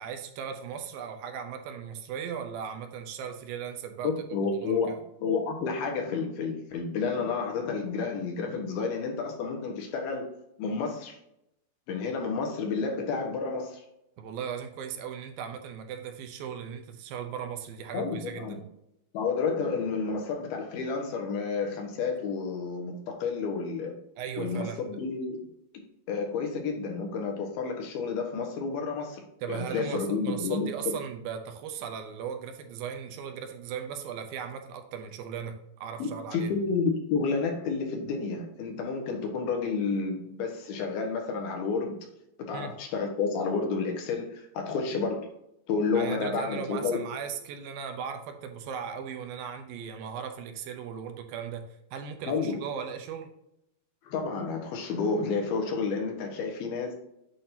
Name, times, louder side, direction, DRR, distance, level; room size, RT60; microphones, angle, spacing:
voice 1, 0.0-4.1 4.6-4.8 14.2-18.6 24.2-25.0 29.4-35.6 35.8-36.5 42.5-42.7 45.9-53.3, right 7 dB, 80° right, 6 dB, 2.6 m, -37 dB
voice 2, 4.0-4.9 5.2-10.3 10.6-11.2 11.9-13.8 17.9-18.6 19.1-24.0 24.4-25.4 25.7-29.2 29.5-31.0 36.0-42.0 42.4-45.3 45.7-47.0 52.3-52.6 54.0-56.9, left 4 dB, 85° left, 2 dB, 3.2 m, -30 dB
8.4 x 5.9 x 2.7 m, 0.82 s
omnidirectional pair, 4.3 m